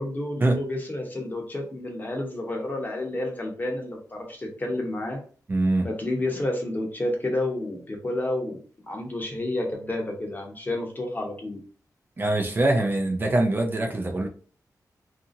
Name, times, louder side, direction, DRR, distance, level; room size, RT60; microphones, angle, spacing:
voice 1, 0.0-5.2 5.8-8.6 8.9-11.6, left 1 dB, 25° left, 0.8 m, -30 dB
voice 2, 5.5-5.9 12.2-14.3, right 2 dB, 30° right, 0.5 m, -23 dB
2.8 x 2.5 x 2.5 m
wide cardioid pair, 125°, 7 cm